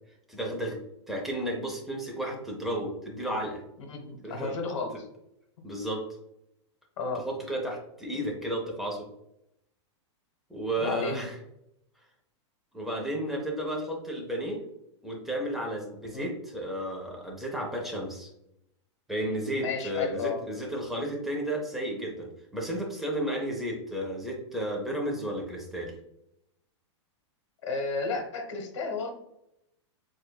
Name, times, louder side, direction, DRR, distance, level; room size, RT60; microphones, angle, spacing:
voice 1, 0.3-0.8 1.1-3.6 4.2-4.5 5.6-6.0 7.2-9.1 10.5-11.3 12.7-14.6 15.0-18.3 19.1-25.9, right 1 dB, ahead, -1 dB, 0.6 m, -33 dB
voice 2, 3.9-5.1 7.0-7.3 10.8-11.2 16.1-16.3 19.6-20.4 27.6-29.1, left 4 dB, 80° left, 3 dB, 1.1 m, -32 dB
6.5 x 2.5 x 2.2 m, 0.81 s
supercardioid pair, 160°, 16 cm